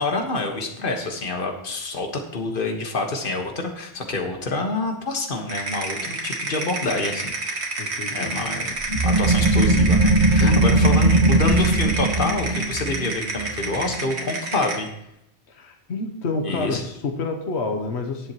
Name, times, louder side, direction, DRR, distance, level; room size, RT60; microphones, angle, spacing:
voice 1, 0.0-7.6 8.1-8.7 9.0-14.9 16.4-16.8, left 2 dB, 55° left, 3 dB, 1.6 m, -27 dB
sound 1, 5.5-14.9, right 2 dB, 85° right, 2.0 m, -29 dB
voice 2, 7.8-8.4 10.4-10.7 15.5-18.3, left 3 dB, 85° left, 4 dB, 1.3 m, -29 dB
sound 2, 8.8-14.1, right 2 dB, 40° right, 1.2 m, -19 dB
18.0 x 7.5 x 3.0 m, 0.80 s
omnidirectional pair, 1.1 m